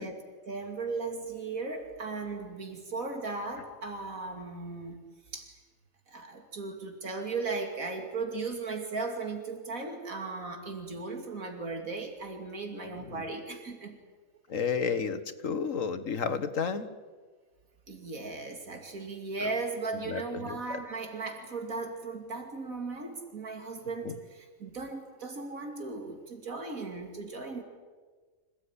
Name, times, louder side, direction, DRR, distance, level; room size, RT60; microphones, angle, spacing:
voice 1, 0.0-5.0 5.3-5.5 6.1-14.0 17.9-27.6, right 3 dB, 85° right, 4 dB, 3.1 m, -37 dB
voice 2, 14.5-16.9 20.1-20.8 24.0-24.1, left 6 dB, 70° left, 10 dB, 1.9 m, -32 dB
26.5 x 17.5 x 9.9 m, 1.4 s
omnidirectional pair, 1.4 m